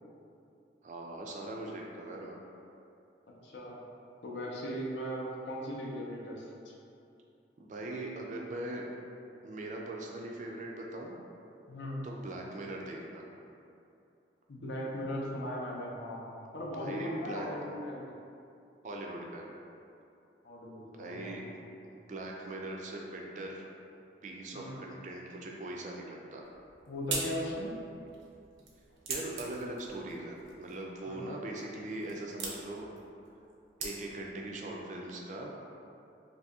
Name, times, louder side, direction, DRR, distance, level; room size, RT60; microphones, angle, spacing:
voice 1, 0.8-2.4 7.6-8.9 9.4-11.1 12.0-13.2 16.8-17.5 18.8-19.5 21.0-21.6 21.9-23.7 24.2-26.4 29.1-32.9 33.8-35.5, right 2 dB, 40° right, -1 dB, 0.3 m, -41 dB
voice 2, 3.4-3.8 4.2-6.5 11.7-12.0 14.5-18.1 20.4-21.4 24.5-24.8 26.9-27.7 31.1-31.2, equal, 75° left, -3 dB, 0.5 m, -38 dB
sound 1, 26.4-34.4, right 4 dB, 85° right, 0.6 m, -43 dB
2.7 x 2.6 x 3.5 m, 2.7 s
head